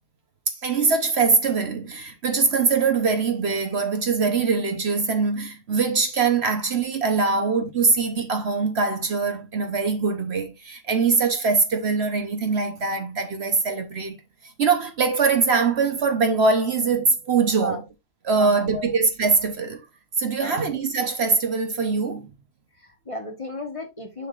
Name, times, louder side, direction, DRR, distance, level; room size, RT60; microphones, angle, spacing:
voice 1, 0.5-14.1 14.6-17.8 18.2-19.8 20.2-22.3, right 4 dB, 55° right, 1.1 m, -22 dB
voice 2, 18.3-18.9 20.4-20.6 22.8-24.3, equal, 25° left, 1.3 m, -34 dB
7.1 x 6.8 x 2.5 m
omnidirectional pair, 1.4 m